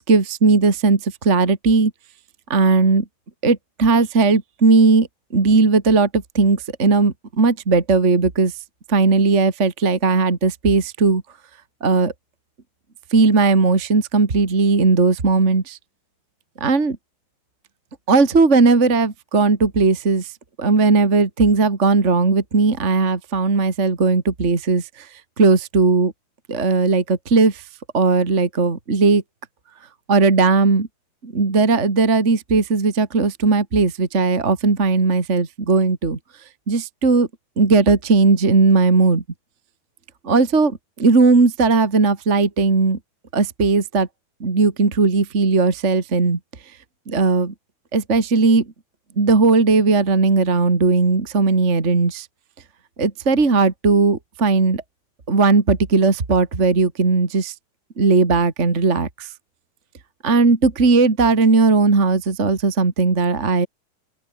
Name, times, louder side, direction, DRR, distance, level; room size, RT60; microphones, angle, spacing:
voice 1, 0.0-1.9 2.5-3.0 3.4-5.1 5.3-8.5 8.9-11.2 11.8-12.1 13.1-15.8 16.6-17.0 18.1-20.3 20.6-25.1 25.4-26.1 26.5-27.6 27.9-29.2 30.1-30.9 31.2-36.2 36.7-37.3 37.6-39.2 40.2-43.0 43.3-44.1 44.4-46.4 47.1-47.5 47.9-48.7 49.2-52.3 53.0-54.8 55.3-57.5 58.0-59.3 60.2-63.7, right 3 dB, 25° right, 2.6 m, -17 dB
open air
omnidirectional pair, 3.4 m